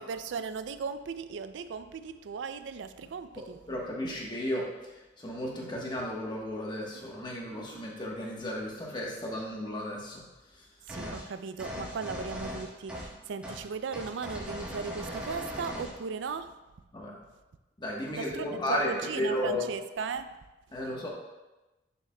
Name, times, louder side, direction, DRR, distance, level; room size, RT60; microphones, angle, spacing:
voice 1, 0.0-3.6 7.4-7.8 10.9-16.5 18.1-20.3, right 5 dB, 70° right, 11 dB, 0.4 m, -37 dB
voice 2, 3.7-4.6 5.2-10.2 11.0-11.1 16.9-17.1 17.8-19.7 20.7-21.1, left 1 dB, 25° left, -2 dB, 1.1 m, -34 dB
sound 1, 10.9-11.2 11.6-13.1 13.4-13.6 13.9-16.0, equal, 5° right, 1.1 m, -39 dB
7.2 x 6.9 x 2.2 m, 1.1 s
head